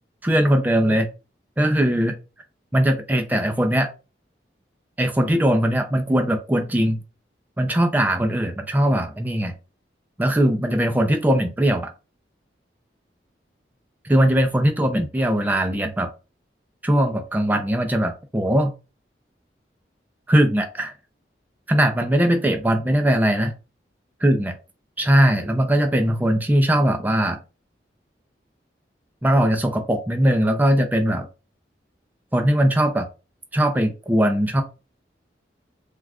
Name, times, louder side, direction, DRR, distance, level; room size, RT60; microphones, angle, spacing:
voice 1, 0.2-1.1 1.6-2.2 2.7-3.9 5.0-7.0 7.6-9.5 10.2-11.9 14.1-16.1 16.8-18.7 20.3-20.9 21.7-23.5 24.2-24.5 25.0-27.4 29.2-31.3 32.3-33.1 33.5-34.6, right 1 dB, 10° right, 6 dB, 0.4 m, -20 dB
2.4 x 2.3 x 3.3 m, 0.31 s
head